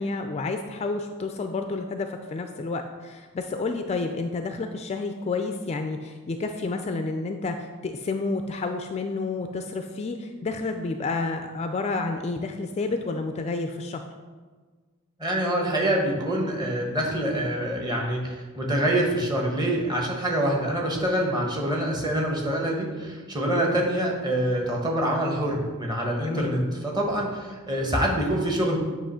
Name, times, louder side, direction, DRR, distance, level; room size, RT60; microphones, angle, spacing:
voice 1, 0.0-14.0 26.3-26.6, left 3 dB, 30° left, 6 dB, 0.3 m, -30 dB
voice 2, 15.2-28.8, right 1 dB, 20° right, -1 dB, 1.2 m, -25 dB
8.7 x 3.0 x 5.6 m, 1.4 s
head